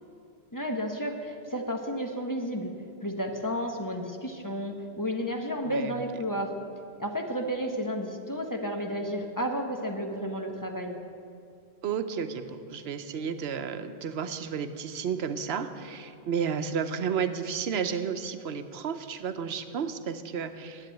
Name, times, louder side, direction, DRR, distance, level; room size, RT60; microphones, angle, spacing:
voice 1, 0.5-2.7 3.0-6.5 7.0-11.0, equal, 20° left, 2 dB, 1.0 m, -32 dB
voice 2, 5.7-6.0 11.8-20.9, right 7 dB, 85° right, 9 dB, 0.9 m, -32 dB
10.5 x 8.5 x 8.9 m, 2.5 s
omnidirectional pair, 1.0 m